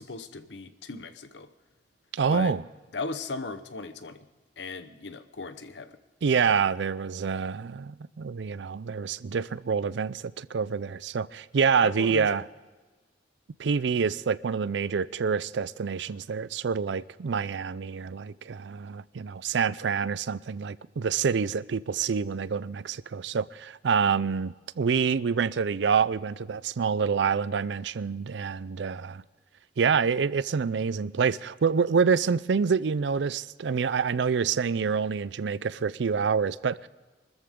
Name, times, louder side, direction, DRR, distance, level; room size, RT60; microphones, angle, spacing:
voice 1, 0.0-1.5 2.3-2.5 2.9-4.2 4.6-5.9 11.8-12.3, left 3 dB, 80° left, 1.0 m, -37 dB
voice 2, 2.1-2.6 6.2-12.5 13.6-29.2 29.8-36.9, right 6 dB, 80° right, 0.4 m, -27 dB
24.0 x 13.5 x 3.7 m
head